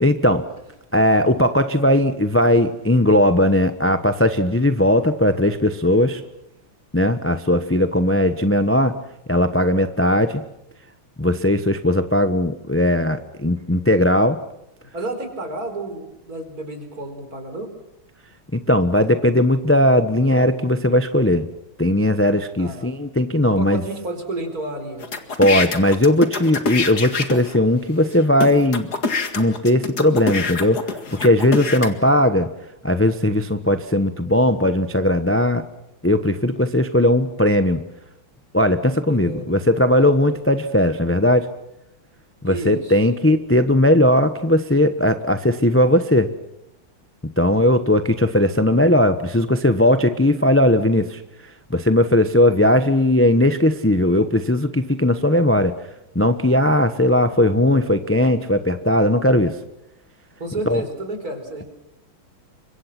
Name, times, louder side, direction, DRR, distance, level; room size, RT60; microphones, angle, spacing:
voice 1, 0.0-0.5 0.9-6.2 6.9-9.0 9.3-10.4 11.2-14.4 18.5-21.5 21.8-23.8 25.4-28.9 29.4-30.8 31.1-32.5 32.8-35.6 36.0-37.8 38.5-41.5 42.4-46.3 47.4-51.2 51.7-55.8 56.1-59.6 60.7-60.8, left 1 dB, 15° left, 10 dB, 0.5 m, -18 dB
voice 2, 14.9-17.7 22.6-22.9 23.5-25.1 39.1-39.6 42.4-42.9 60.4-61.6, right 2 dB, 45° right, 6 dB, 5.0 m, -31 dB
sound 1, 25.0-27.6 28.1-28.2 28.4-31.9, left 4 dB, 50° left, 2.5 m, -25 dB
30.0 x 25.0 x 6.0 m, 0.84 s
omnidirectional pair, 2.2 m